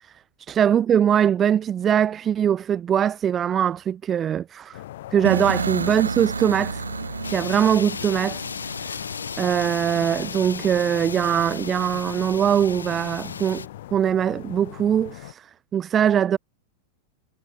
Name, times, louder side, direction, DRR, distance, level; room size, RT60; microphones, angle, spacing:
voice 1, 0.5-4.8 5.1-6.8 7.3-8.4 8.8-9.0 9.4-13.7 13.9-15.5 15.7-16.4, right 9 dB, 25° right, 0.5 m, -22 dB
sound 1, 4.7-15.3, left 15 dB, 55° left, 4.2 m, -41 dB
sound 2, 5.2-9.2, right 5 dB, 75° right, 1.5 m, -30 dB
sound 3, 7.2-13.7, left 5 dB, 75° left, 1.5 m, -35 dB
figure-of-eight pair, 90°, 0 cm